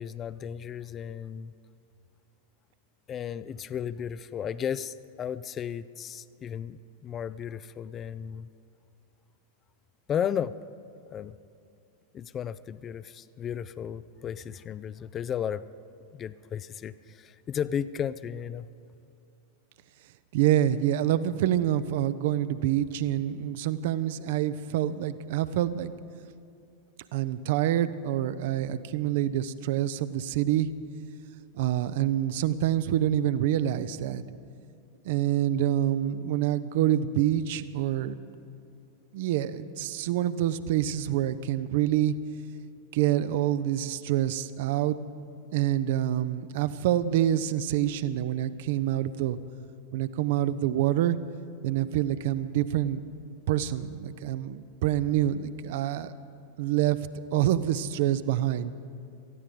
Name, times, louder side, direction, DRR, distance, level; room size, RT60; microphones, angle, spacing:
voice 1, 0.0-1.5 3.1-8.5 10.1-10.6 11.1-11.3 12.1-15.6 15.9-18.7, left 8 dB, 25° left, 16 dB, 0.4 m, -34 dB
voice 2, 20.3-25.9 27.1-30.7 31.5-34.2 35.1-38.2 39.1-42.1 42.9-45.0 45.5-49.4 49.9-51.2 51.6-53.0 53.5-56.1 56.6-58.7, right 12 dB, 50° right, 14 dB, 0.6 m, -26 dB
19.0 x 14.0 x 5.1 m, 2.5 s
figure-of-eight pair, 90°, 0 cm